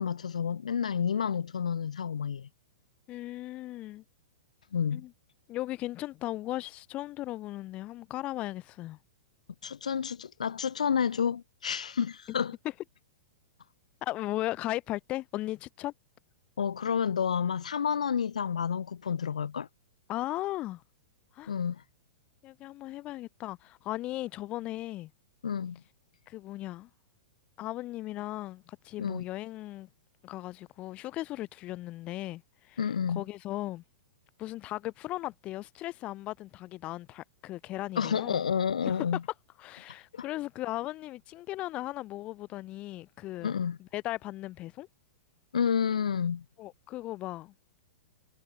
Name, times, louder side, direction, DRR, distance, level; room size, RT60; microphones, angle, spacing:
voice 1, 0.0-2.5 4.7-5.0 9.6-12.5 16.6-19.7 21.5-21.8 25.4-25.8 29.0-29.2 32.8-33.2 38.0-39.2 40.1-40.2 43.4-43.8 45.5-46.4, left 7 dB, 90° left, 1.7 m, -30 dB
voice 2, 3.1-4.0 4.9-5.1 5.5-9.0 14.0-15.9 20.1-20.8 21.3-21.5 22.4-25.1 26.3-26.9 27.6-29.9 30.2-32.8 33.1-33.8 34.4-38.4 38.9-39.0 39.6-43.5 43.8-44.9 46.6-47.5, left 16 dB, 35° left, 2.1 m, -37 dB
hypercardioid pair, 130°, 4 cm